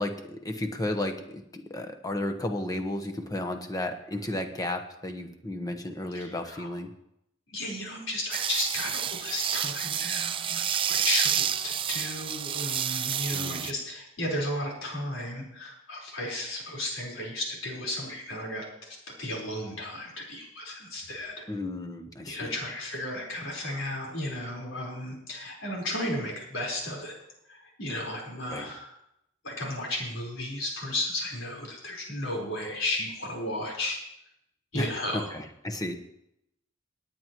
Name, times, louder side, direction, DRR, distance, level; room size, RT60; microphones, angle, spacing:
voice 1, 0.0-6.9 13.3-13.7 21.5-22.5 28.5-28.7 34.7-36.0, left 1 dB, 20° left, 5 dB, 1.2 m, -33 dB
voice 2, 6.1-6.7 7.5-21.4 22.2-27.1 27.5-28.9 29.4-34.0 34.7-35.3, left 1 dB, 85° left, -2 dB, 4.5 m, -34 dB
sound 1, 8.3-13.7, right 9 dB, 25° right, 0.4 m, -29 dB
20.0 x 9.6 x 3.1 m, 0.78 s
head